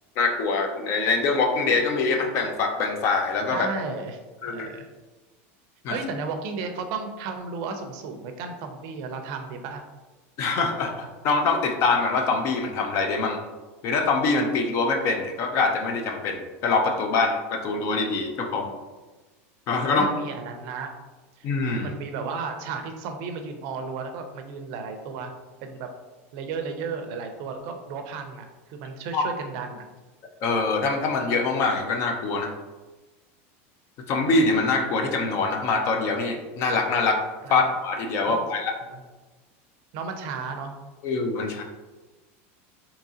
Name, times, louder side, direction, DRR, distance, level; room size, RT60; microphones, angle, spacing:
voice 1, 0.2-3.7 4.4-4.7 5.8-6.0 10.4-13.4 13.8-18.7 19.7-20.1 21.4-21.9 29.1-29.2 30.4-32.5 34.1-37.2 37.5-38.7 41.0-41.6, left 3 dB, 40° left, 4 dB, 0.4 m, -24 dB
voice 2, 3.5-4.2 4.5-4.9 5.9-9.8 18.6-18.8 19.9-20.9 21.4-21.5 21.8-25.3 25.6-25.9 26.3-29.8 37.4-37.7 38.3-38.4 38.9-39.0 39.9-40.8, right 4 dB, 50° right, 6 dB, 0.5 m, -34 dB
3.6 x 2.8 x 2.7 m, 1.2 s
supercardioid pair, 155°, 7 cm